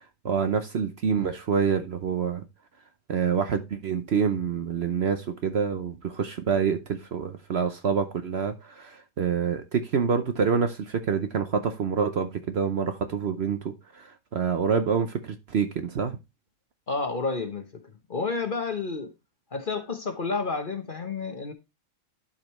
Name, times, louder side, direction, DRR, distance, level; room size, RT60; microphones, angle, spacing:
voice 1, 0.2-2.4 3.1-14.1 14.3-16.2, right 6 dB, 55° right, 0.9 m, -27 dB
voice 2, 16.9-17.7 18.1-19.1 19.5-21.5, left 4 dB, 40° left, 1.1 m, -30 dB
11.5 x 5.2 x 3.1 m
omnidirectional pair, 1.5 m